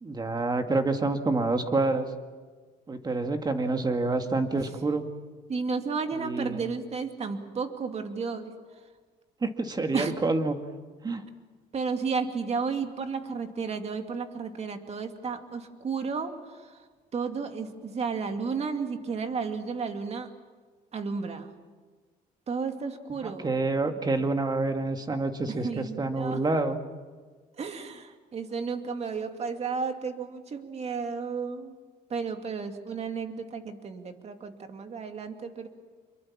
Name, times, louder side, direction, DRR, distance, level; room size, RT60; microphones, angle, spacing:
voice 1, 0.0-2.1 2.9-5.0 6.2-6.6 9.4-10.6 11.0-11.2 23.2-26.8, right 3 dB, 25° right, 6 dB, 2.0 m, -27 dB
voice 2, 5.5-8.5 9.9-10.1 11.7-16.8 17.1-20.3 20.9-21.5 22.5-23.5 25.5-26.4 27.6-31.8 32.1-35.7, right 5 dB, 40° right, 6 dB, 2.4 m, -33 dB
26.0 x 23.0 x 7.4 m, 1.4 s
cardioid pair, 110°, 17 cm